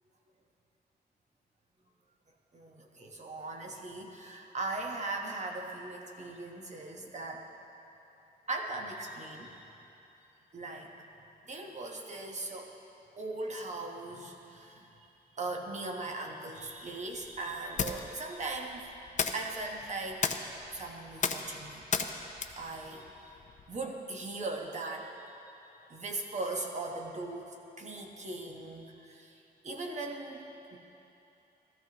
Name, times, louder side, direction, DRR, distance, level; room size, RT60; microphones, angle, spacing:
voice 1, 2.5-7.5 8.5-9.6 10.5-10.9 11.5-12.7 13.2-14.9 15.3-18.9 19.3-20.2 20.7-21.9 22.5-23.4 23.7-25.1 25.9-30.8, right 2 dB, 40° right, 1 dB, 1.2 m, -39 dB
sound 1, 16.8-23.8, left 5 dB, 45° left, 0.6 m, -37 dB
15.5 x 14.0 x 2.9 m, 2.9 s
wide cardioid pair, 150°, 18 cm